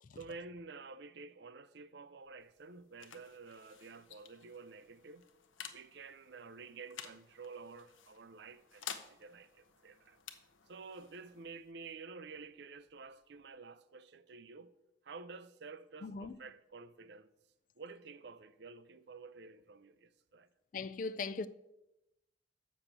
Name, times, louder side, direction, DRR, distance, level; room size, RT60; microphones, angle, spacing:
voice 1, 0.1-5.3 5.7-10.2 10.7-14.7 15.0-17.3 17.8-20.5, right 4 dB, 60° right, 0.5 m, -51 dB
sound 1, 2.2-13.6, left 8 dB, 85° left, 0.8 m, -53 dB
voice 2, 16.0-16.3 20.7-21.5, left 4 dB, 40° left, 0.3 m, -39 dB
7.3 x 6.1 x 6.7 m
head